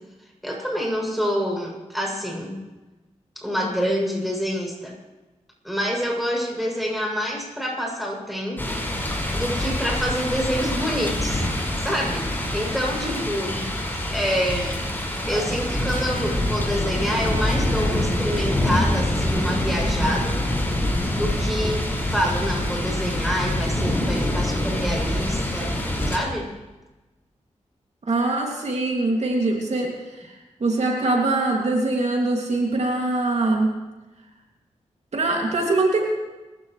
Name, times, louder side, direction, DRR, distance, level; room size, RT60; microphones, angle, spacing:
voice 1, 0.4-2.6 3.4-4.9 5.6-8.8 9.3-11.4 11.8-12.3 12.5-13.7 14.1-14.8 15.3-20.4 21.1-25.8 26.1-26.5, equal, ahead, -2 dB, 7.6 m, -27 dB
sound 1, 8.6-26.2, left 1 dB, 15° left, 5.7 m, -25 dB
voice 2, 28.1-33.8 35.1-36.0, right 2 dB, 65° right, 0 dB, 2.6 m, -23 dB
26.0 x 15.5 x 3.3 m, 1.1 s
cardioid pair, 65°, 12 cm